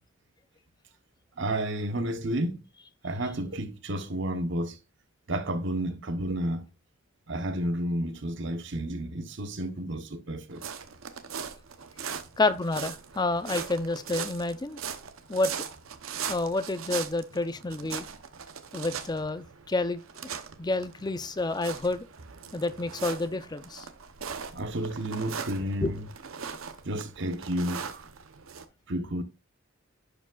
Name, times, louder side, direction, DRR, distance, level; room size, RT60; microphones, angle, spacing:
voice 1, 1.4-2.6 3.0-4.8 5.3-6.7 7.3-10.6 24.5-26.0 26.8-28.0 28.9-29.2, right 1 dB, 60° right, 1.0 m, -31 dB
sound 1, 10.5-28.6, right 7 dB, 90° right, 0.8 m, -40 dB
voice 2, 12.4-14.8 15.3-15.5 16.3-18.1 18.7-20.0 20.6-22.1 22.5-23.9 25.8-25.9, left 2 dB, 20° left, 0.6 m, -29 dB
11.0 x 5.0 x 2.4 m
head